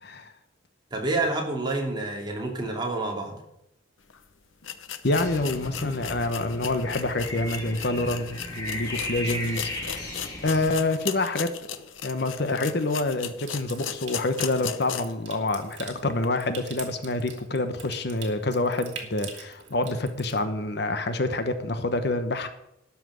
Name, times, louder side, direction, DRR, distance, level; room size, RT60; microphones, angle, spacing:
voice 1, 0.0-0.3 5.0-10.1 10.4-11.5 12.0-22.5, left 2 dB, 55° left, 9 dB, 1.0 m, -27 dB
voice 2, 0.9-3.4, right 2 dB, 20° right, 0 dB, 2.7 m, -28 dB
sound 1, 4.1-4.2 4.6-15.2 15.6-15.7 16.2-16.3, left 9 dB, 80° left, 0.9 m, -37 dB
sound 2, 5.1-10.8, left 1 dB, 15° left, 3.3 m, -36 dB
Water tap faucet / Sink (filling or washing) / Trickle dribble, 13.4-20.4, right 6 dB, 65° right, 2.6 m, -44 dB
12.5 x 6.0 x 9.0 m, 0.82 s
head